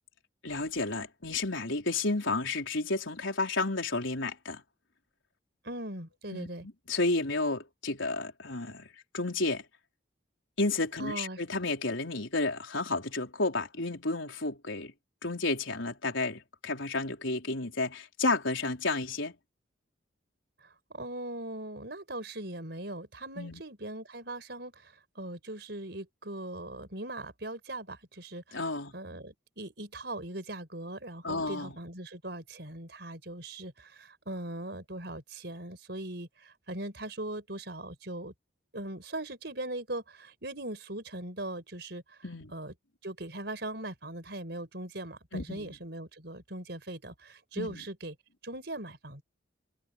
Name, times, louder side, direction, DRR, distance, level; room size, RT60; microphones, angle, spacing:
voice 1, 0.4-4.6 6.3-8.9 9.1-9.6 10.6-14.9 15.2-19.3 23.4-23.6 28.5-28.9 31.2-31.7 42.2-42.5 45.3-45.8 47.5-47.8, left 2 dB, 85° left, 4.3 m, -31 dB
voice 2, 5.6-6.7 11.0-11.4 20.6-28.6 28.9-38.3 38.7-42.2 42.5-42.7 43.0-48.2 48.4-49.2, right 1 dB, 60° right, 5.3 m, -40 dB
head